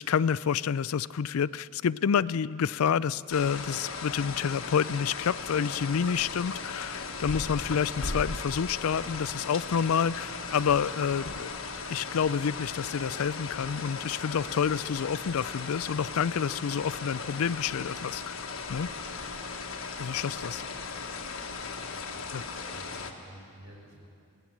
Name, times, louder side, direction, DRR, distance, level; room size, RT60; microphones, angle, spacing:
voice 1, 0.0-11.5 11.9-18.4 18.7-18.9 20.0-20.6 22.3-22.4, left 7 dB, 85° left, 18 dB, 0.4 m, -28 dB
sound 1, 3.3-23.1, left 4 dB, 70° left, 1.6 m, -37 dB
sound 2, 10.5-18.8, equal, 20° left, 0.9 m, -54 dB
voice 2, 21.7-22.4 22.7-24.1, right 1 dB, 80° right, -2 dB, 5.5 m, -51 dB
23.0 x 17.0 x 7.3 m, 2.4 s
head